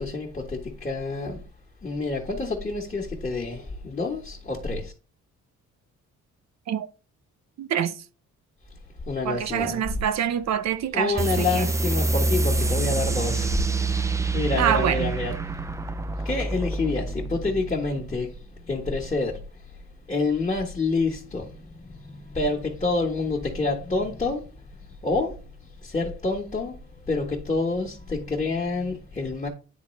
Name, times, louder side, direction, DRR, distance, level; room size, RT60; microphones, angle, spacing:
voice 1, 0.0-1.4 1.8-4.9 9.0-9.8 10.9-13.6 13.9-15.3 16.2-19.8 20.1-29.5, left 3 dB, 25° left, 1.4 m, -28 dB
voice 2, 7.6-7.9 9.2-11.7 14.6-15.1, right 9 dB, 60° right, 0.7 m, -25 dB
sound 1, 11.2-18.3, right 3 dB, 10° right, 0.4 m, -27 dB
9.4 x 3.8 x 3.2 m
cardioid pair, 90°, 30 cm